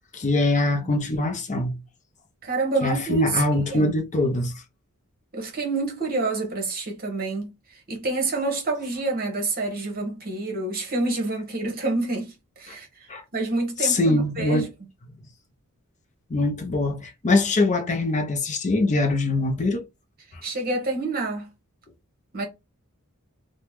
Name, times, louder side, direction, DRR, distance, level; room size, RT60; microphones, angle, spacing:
voice 1, 0.1-1.8 2.8-4.5 12.7-12.8 13.1-13.2 13.8-14.7 16.3-19.8 20.3-20.4, left 2 dB, 35° left, 0.5 m, -23 dB
voice 2, 2.4-3.3 3.7-3.9 5.3-7.5 7.9-12.9 13.3-14.7 20.4-21.5 22.3-22.5, right 3 dB, 40° right, 1.0 m, -27 dB
2.9 x 2.1 x 3.4 m
head